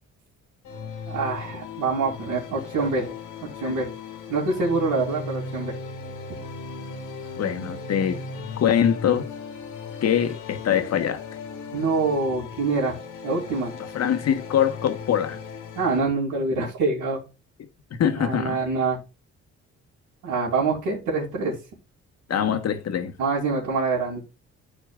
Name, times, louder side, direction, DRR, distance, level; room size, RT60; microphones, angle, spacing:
sound 1, 0.6-16.0, left 4 dB, 90° left, 2.1 m, -37 dB
voice 1, 1.1-3.1 3.6-3.9 4.3-5.7 11.7-13.0 13.2-13.7 15.8-17.2 18.2-19.0 20.2-21.6 23.2-24.2, right 3 dB, 85° right, 2.9 m, -25 dB
voice 2, 7.4-8.2 8.6-9.3 10.0-11.2 13.9-15.4 18.0-18.6 22.3-23.2, left 9 dB, 60° left, 1.3 m, -23 dB
12.5 x 4.4 x 2.4 m
cardioid pair, 90°, 30 cm